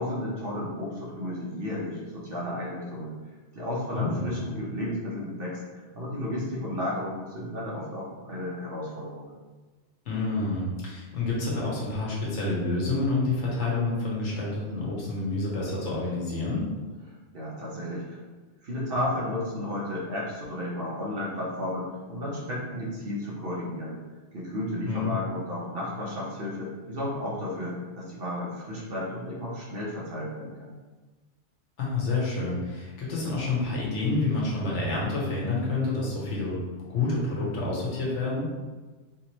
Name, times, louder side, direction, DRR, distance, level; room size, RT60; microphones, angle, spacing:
voice 1, 0.0-3.1 3.5-9.3 17.3-18.2 18.6-24.0 24.3-30.7, left 1 dB, 55° right, -5 dB, 1.0 m, -33 dB
voice 2, 3.9-4.2 10.0-16.7 24.9-25.2 31.8-36.6 36.9-38.5, left 3 dB, 80° left, -5 dB, 1.3 m, -28 dB
3.6 x 2.9 x 2.9 m, 1.3 s
omnidirectional pair, 1.2 m